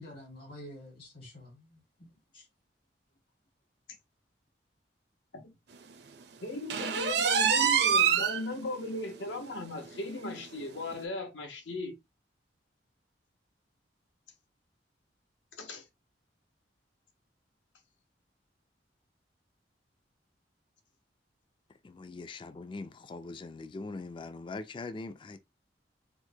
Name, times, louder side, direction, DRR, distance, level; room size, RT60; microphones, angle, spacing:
voice 1, 0.0-2.1 2.3-2.5, left 1 dB, 60° left, 1.5 m, -48 dB
voice 2, 6.4-12.0 15.6-15.8, left 2 dB, 80° left, 1.0 m, -37 dB
sound 1, 6.7-8.4 8.8-8.9 9.4-9.5 9.9-10.0 10.9-11.0, right 7 dB, 60° right, 0.5 m, -25 dB
voice 3, 21.8-25.4, left 3 dB, 30° left, 0.3 m, -42 dB
4.5 x 2.1 x 2.7 m
head